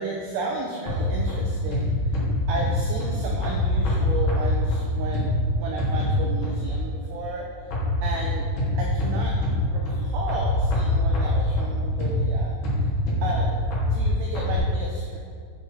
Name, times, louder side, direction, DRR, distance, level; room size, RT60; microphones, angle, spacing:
voice 1, 0.0-2.2 2.5-5.3 5.6-7.8 8.0-8.5 8.7-9.4 9.7-12.9 13.2-13.6 13.9-15.2, right 3 dB, 90° right, -1 dB, 2.3 m, -33 dB
sound 1, 0.9-6.9 7.7-14.6, left 1 dB, 70° left, 1.7 m, -24 dB
8.6 x 7.3 x 3.3 m, 2.1 s
omnidirectional pair, 5.8 m